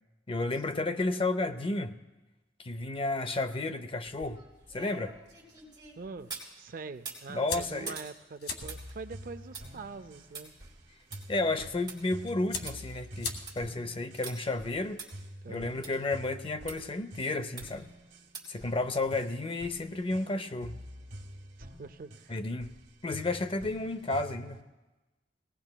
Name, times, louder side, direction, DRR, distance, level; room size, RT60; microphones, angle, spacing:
voice 1, 0.3-2.0 2.6-4.4 4.7-5.1 7.3-7.9 11.3-15.0 15.5-17.9 18.5-20.8 22.3-22.7 23.0-24.6, left 2 dB, 30° left, 10 dB, 0.5 m, -32 dB
sound 1, 4.0-6.5 6.9-12.0 12.3-12.4 12.7-12.8 13.2-13.6 14.2-14.3 15.0-15.1 15.8-15.9 16.7-16.8 17.6-17.9 18.3-18.6 19.0-19.1, right 5 dB, 25° right, 3.3 m, -46 dB
voice 2, 6.0-6.3 6.6-10.5 15.4-15.8 21.6-22.4, right 4 dB, 50° right, 11 dB, 0.4 m, -44 dB
sound 2, 7.5-15.9, left 4 dB, 60° left, 1.6 m, -44 dB
sound 3, 8.6-24.6, equal, 75° right, 1.5 m, -48 dB
21.0 x 18.0 x 2.2 m, 1.1 s
head